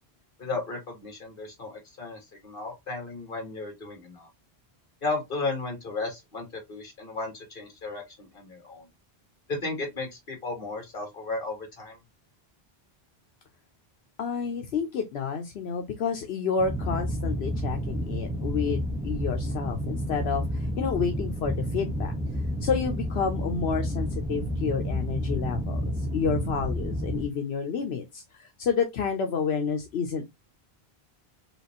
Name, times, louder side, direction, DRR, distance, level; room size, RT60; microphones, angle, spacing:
voice 1, 0.4-4.3 5.0-8.9 9.5-12.0, left 3 dB, 60° left, 1.9 m, -34 dB
voice 2, 14.2-22.1 22.6-30.3, left 6 dB, 80° left, 1.0 m, -30 dB
sound 1, 16.6-27.3, equal, 5° right, 0.9 m, -30 dB
4.9 x 3.2 x 2.8 m
omnidirectional pair, 1.0 m